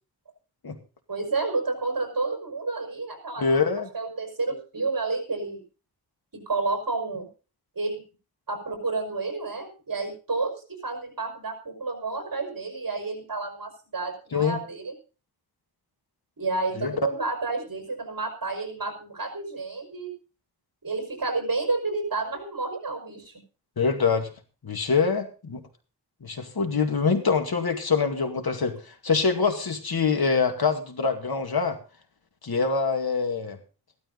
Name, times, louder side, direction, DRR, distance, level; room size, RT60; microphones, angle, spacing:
voice 1, 1.1-3.6 3.9-5.6 6.3-7.3 7.8-8.0 8.5-14.9 16.4-20.1 20.8-23.3, right 3 dB, 55° right, 4 dB, 5.4 m, -30 dB
voice 2, 3.4-3.9 14.3-14.6 16.8-16.9 23.8-24.3 24.6-25.6 26.2-28.8 29.0-31.8 32.4-33.6, left 5 dB, 65° left, 6 dB, 2.2 m, -24 dB
15.5 x 12.5 x 4.0 m, 0.35 s
wide cardioid pair, 110°, 41 cm